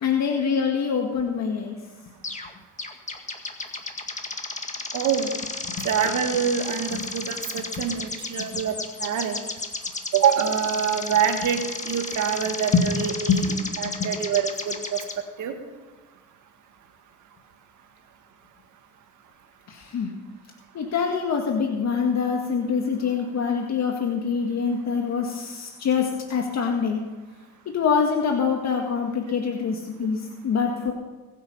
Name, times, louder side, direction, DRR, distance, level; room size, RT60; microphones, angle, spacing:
voice 1, 0.0-1.8 5.8-5.9 6.9-7.0 8.4-8.6 12.7-12.9 13.3-14.1 19.7-20.1 20.7-27.0 27.7-30.9, left 6 dB, 65° left, 1 dB, 1.9 m, -25 dB
sound 1, 2.2-2.5 2.8-15.2, left 3 dB, 25° left, 1.8 m, -33 dB
voice 2, 4.9-5.3 5.8-8.8 9.0-9.4 10.1-15.0 15.4-15.5, right 8 dB, 80° right, 5 dB, 1.8 m, -25 dB
21.0 x 8.7 x 5.6 m, 1.3 s
cardioid pair, 90°, 30 cm